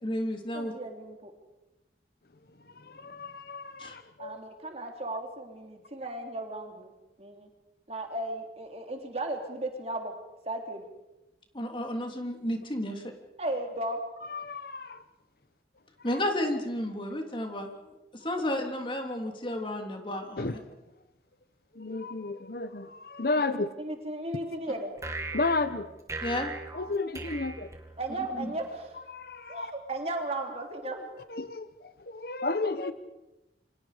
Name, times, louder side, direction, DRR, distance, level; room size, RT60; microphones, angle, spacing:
voice 1, 0.0-0.7 3.8-4.0 11.5-13.0 16.0-17.8 18.2-20.5 26.2-26.5 28.3-28.5, left 1 dB, 30° left, 3 dB, 3.2 m, -32 dB
voice 2, 0.5-1.3 4.2-6.9 7.2-7.5 7.9-10.1 10.4-10.8 13.4-14.0 23.5-24.9 28.0-28.9 29.5-31.1, right 2 dB, 35° right, 3 dB, 3.4 m, -35 dB
voice 3, 2.7-4.4 14.2-15.0 16.0-16.2 20.4-20.6 21.7-23.7 25.3-25.9 26.7-27.7 29.1-29.7 31.3-32.9, left 3 dB, 60° left, 11 dB, 1.1 m, -33 dB
sound 1, 25.0-28.4, right 2 dB, 15° right, 2.4 m, -39 dB
29.0 x 25.0 x 5.1 m, 0.97 s
head